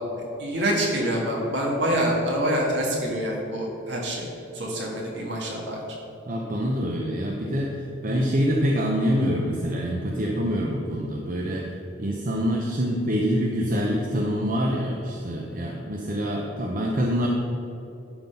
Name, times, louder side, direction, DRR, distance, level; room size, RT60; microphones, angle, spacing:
voice 1, 0.4-4.3 4.5-6.0, right 1 dB, 60° right, -2 dB, 1.9 m, -26 dB
voice 2, 6.3-17.3, equal, 45° right, -1 dB, 0.7 m, -26 dB
11.5 x 3.9 x 5.6 m, 2.8 s
head